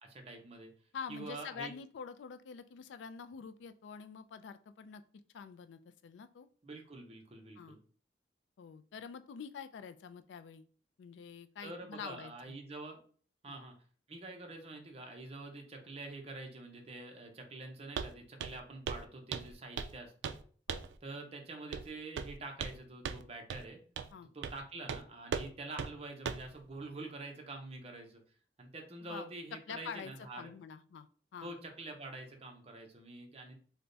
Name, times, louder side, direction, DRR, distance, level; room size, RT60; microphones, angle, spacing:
voice 1, 0.0-0.7 1.1-1.7 6.6-7.8 11.6-13.0 13.4-13.7 14.1-20.3 21.0-23.8 24.3-28.2 28.6-30.5 31.4-33.5, right 2 dB, 35° right, 3 dB, 0.7 m, -46 dB
voice 2, 0.9-5.0 5.3-6.5 7.6-7.8 8.6-10.7 11.0-12.5 13.5-13.6 20.7-20.8 24.1-24.3 29.1-29.3 29.7-31.5, left 6 dB, 90° left, 11 dB, 0.3 m, -46 dB
Walk footsteps, 18.0-18.1 18.4-18.6 18.9-19.0 19.3-20.0 20.2-20.4 20.7-20.9 21.7-21.9 22.2-22.8 23.0-23.2 23.5-23.6 24.0-24.1 24.4-24.6 24.9-25.0 25.3-25.5 25.8-25.9 26.3-26.5, right 6 dB, 85° right, 0.3 m, -38 dB
3.4 x 2.1 x 3.8 m, 0.44 s
head